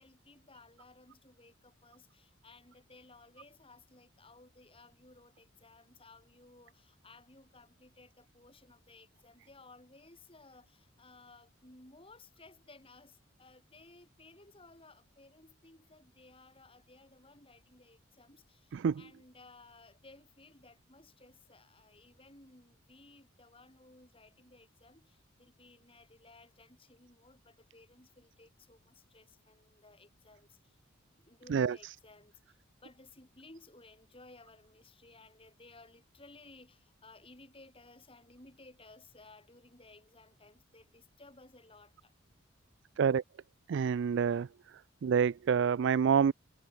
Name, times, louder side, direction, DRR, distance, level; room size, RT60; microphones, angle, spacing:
voice 1, 0.0-30.8 31.2-42.1 42.9-43.0, left 2 dB, 25° left, 7.0 m, -58 dB
voice 2, 43.7-44.5 45.0-46.3, right 7 dB, 60° right, 0.3 m, -27 dB
head